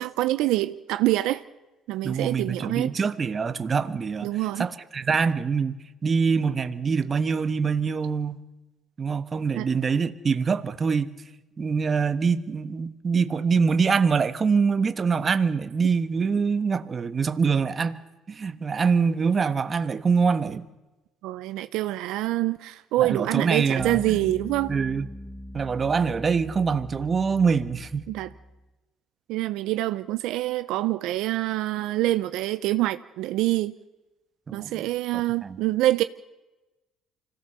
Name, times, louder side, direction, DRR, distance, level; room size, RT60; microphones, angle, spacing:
voice 1, 0.0-1.4 1.9-2.9 4.2-4.7 9.6-9.7 21.2-24.7 28.1-28.3 29.3-33.7 34.5-36.0, right 16 dB, 80° right, 0.7 m, -26 dB
voice 2, 2.0-4.3 4.6-8.4 9.0-11.1 11.6-18.0 18.3-20.6 23.0-24.2 24.7-25.1 25.5-28.1 34.5-34.8 35.4-35.6, right 5 dB, 35° right, 1.3 m, -24 dB
sound 1, 23.8-28.6, left 2 dB, 15° left, 1.2 m, -40 dB
25.5 x 17.0 x 6.9 m
cardioid pair, 100°, 0 cm